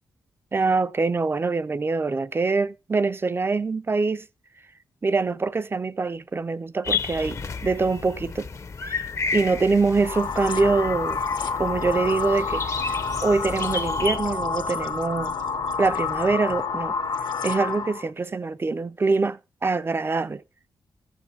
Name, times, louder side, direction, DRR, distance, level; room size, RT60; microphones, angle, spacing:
voice 1, 0.5-4.3 5.0-8.5 8.8-9.0 9.3-11.2 11.6-13.0 13.2-15.3 15.8-17.0 17.4-20.4, right 4 dB, 30° right, 0.5 m, -24 dB
sound 1, 6.8-14.2, left 4 dB, 40° left, 0.7 m, -32 dB
sound 2, 10.0-18.1, left 5 dB, 65° left, 1.0 m, -28 dB
14.5 x 7.2 x 4.1 m
cardioid pair, 100°, 8 cm